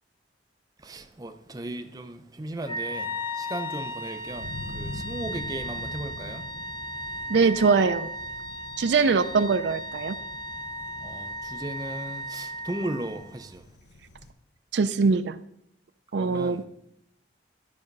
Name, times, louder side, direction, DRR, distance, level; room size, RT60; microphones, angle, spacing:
voice 1, 0.8-6.4 11.0-13.6 16.2-16.6, right 1 dB, 20° right, 0.6 m, -36 dB
Wind instrument woodwind instrument, 2.6-13.4, equal, 25° left, 0.8 m, -36 dB
Thunder, 3.7-14.3, left 2 dB, 75° left, 0.9 m, -44 dB
voice 2, 7.3-8.1 8.8-10.2 14.7-15.4 16.1-16.6, right 4 dB, 75° right, 0.4 m, -22 dB
11.5 x 5.0 x 5.3 m
head